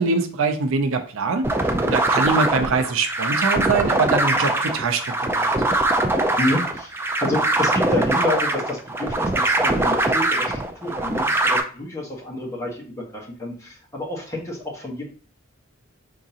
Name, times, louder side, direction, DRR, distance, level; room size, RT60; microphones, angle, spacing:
voice 1, 0.0-5.5, right 4 dB, 65° right, 7 dB, 0.5 m, -23 dB
sound 1, 1.4-11.6, right 2 dB, 10° right, 0.4 m, -22 dB
voice 2, 6.4-6.9 7.2-15.1, left 1 dB, 15° left, -3 dB, 1.2 m, -29 dB
5.0 x 3.7 x 2.8 m, 0.41 s
head